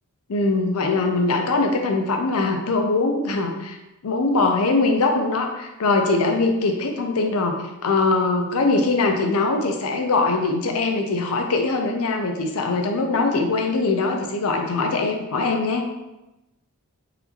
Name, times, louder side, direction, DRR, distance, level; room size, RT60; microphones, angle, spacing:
voice 1, 0.3-3.8 4.0-7.5 7.8-15.9, left 3 dB, 80° left, 3 dB, 0.5 m, -22 dB
4.1 x 2.6 x 2.8 m, 0.99 s
head